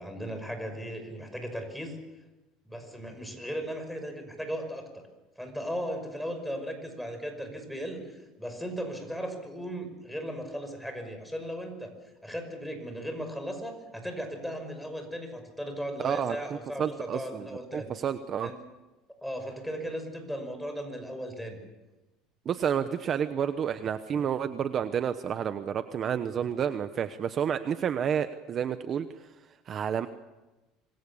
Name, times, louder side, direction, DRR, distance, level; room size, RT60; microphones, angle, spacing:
voice 1, 0.0-2.0 2.6-5.0 5.4-11.9 12.2-17.9 18.4-18.6 19.2-21.6, equal, ahead, 6 dB, 5.8 m, -37 dB
voice 2, 16.0-17.5 17.7-18.5 22.4-29.3 29.7-30.1, right 8 dB, 35° right, 10 dB, 1.0 m, -30 dB
26.5 x 22.5 x 7.2 m, 1.1 s
cardioid pair, 130°, 0 cm